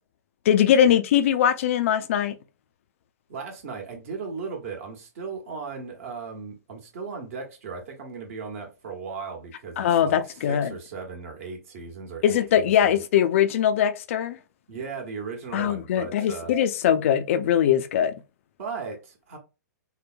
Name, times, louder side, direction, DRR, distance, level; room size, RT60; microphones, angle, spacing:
voice 1, 0.5-2.4 9.8-10.7 12.2-14.4 15.5-18.1, left 9 dB, 45° left, 0.3 m, -21 dB
voice 2, 3.3-10.2 10.5-12.9 14.7-16.5 18.6-19.4, right 5 dB, 50° right, 1.1 m, -37 dB
3.8 x 2.0 x 2.5 m
figure-of-eight pair, 115°, 10 cm